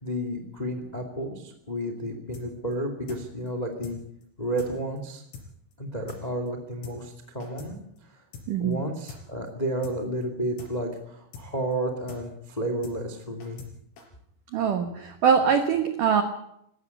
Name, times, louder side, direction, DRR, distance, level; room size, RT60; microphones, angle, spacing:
voice 1, 0.0-4.0 4.4-5.2 5.8-7.8 8.6-13.6, right 1 dB, 45° left, 6 dB, 0.5 m, -31 dB
sound 1, 2.3-2.5 2.7-2.8 3.1-3.2 3.5-3.6 3.8-4.0 4.2-4.3 4.6-4.7 5.0-5.1 5.3-5.5 5.7-5.8 6.1-6.2 6.5-6.6 6.8-7.0 7.2-7.7 8.0-8.1 8.3-8.5 8.7-8.8 9.1-9.2 9.5-9.6 9.8-10.0 10.2-10.3 10.6-10.7 11.0-11.1 11.3-11.5 11.7-11.8 12.1-12.2 12.5-12.6 12.8-13.0 13.2-13.7 14.0-14.1, left 6 dB, 85° left, 6.7 m, -43 dB
voice 2, 8.5-8.8 14.5-16.2, right 7 dB, 85° right, 7 dB, 1.8 m, -23 dB
19.5 x 16.0 x 8.3 m, 0.75 s
omnidirectional pair, 5.9 m